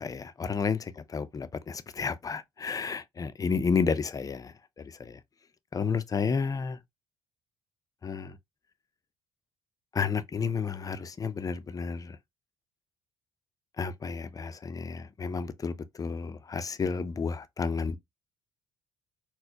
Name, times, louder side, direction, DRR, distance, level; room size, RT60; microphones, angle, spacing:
voice 1, 0.0-5.2 5.7-6.8 8.0-8.4 9.9-12.2 13.8-18.0, left 5 dB, 30° left, 0.5 m, -31 dB
4.1 x 2.1 x 2.7 m
supercardioid pair, 75°, 12 cm